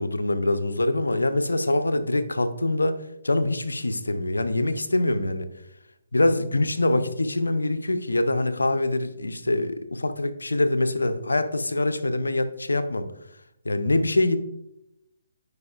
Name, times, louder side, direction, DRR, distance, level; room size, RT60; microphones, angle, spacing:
voice 1, 0.0-3.0 3.2-5.5 6.1-13.1 13.6-14.4, left 2 dB, 80° left, 11 dB, 0.5 m, -24 dB
9.4 x 4.7 x 2.4 m, 0.85 s
figure-of-eight pair, 135°, 0 cm